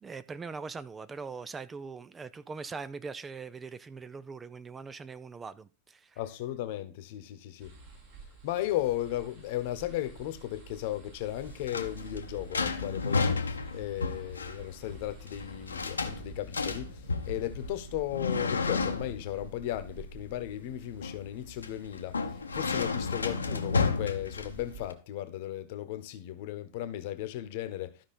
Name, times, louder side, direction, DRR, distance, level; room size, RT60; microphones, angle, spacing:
voice 1, 0.0-6.2, right 5 dB, 15° right, 0.4 m, -41 dB
voice 2, 6.2-7.7 8.4-13.3 13.7-28.1, left 13 dB, 50° left, 1.1 m, -36 dB
sound 1, 7.6-24.8, right 4 dB, 50° right, 4.1 m, -50 dB
sound 2, 11.3-24.9, left 4 dB, 75° left, 0.9 m, -33 dB
12.5 x 5.6 x 4.2 m
figure-of-eight pair, 90°, 0 cm